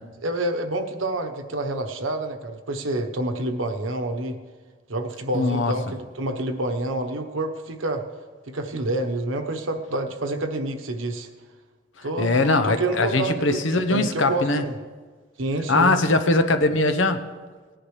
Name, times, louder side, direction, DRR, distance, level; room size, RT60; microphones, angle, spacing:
voice 1, 0.2-4.4 4.9-8.0 8.5-11.3 12.0-14.8 15.4-15.9, right 2 dB, 90° right, 5 dB, 1.1 m, -28 dB
voice 2, 5.3-5.7 12.2-14.7 15.7-17.2, left 2 dB, 75° left, 8 dB, 0.9 m, -21 dB
18.5 x 10.0 x 3.3 m, 1.5 s
head